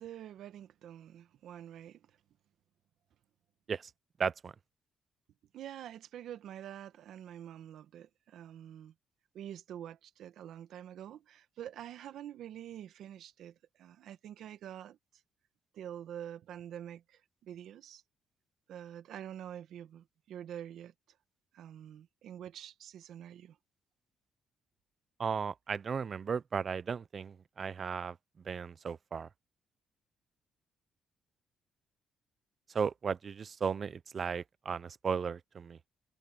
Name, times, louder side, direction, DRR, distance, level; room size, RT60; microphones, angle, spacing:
voice 1, 0.0-2.2 5.5-8.9 9.3-15.0 15.7-18.0 18.7-20.9 21.5-23.6, right 10 dB, 75° right, 1.7 m, -46 dB
voice 2, 4.2-4.5 25.2-28.2 28.4-29.3 32.7-35.8, right 6 dB, 45° right, 0.5 m, -35 dB
cardioid pair, 90°, 0 cm